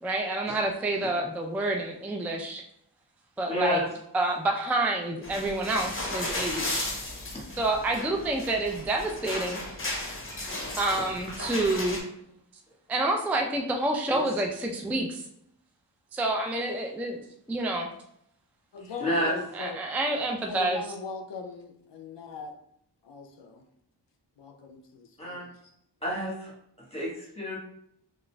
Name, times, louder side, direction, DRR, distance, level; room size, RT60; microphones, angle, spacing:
voice 1, 0.0-2.6 3.4-3.8 4.1-6.9 7.6-9.6 10.8-12.0 12.9-15.2 16.1-17.2 17.5-17.9 19.5-20.8, right 2 dB, 5° right, 0.3 m, -28 dB
voice 2, 3.5-3.9 18.8-19.4 25.2-25.5 26.0-26.5 26.9-27.6, equal, 15° left, 1.3 m, -29 dB
sound 1, 5.2-12.0, left 1 dB, 30° left, 0.8 m, -35 dB
voice 3, 18.7-19.8 20.5-22.5 23.0-23.6 24.4-25.5, left 4 dB, 75° left, 0.5 m, -40 dB
3.8 x 2.5 x 2.2 m
wide cardioid pair, 45°, 43 cm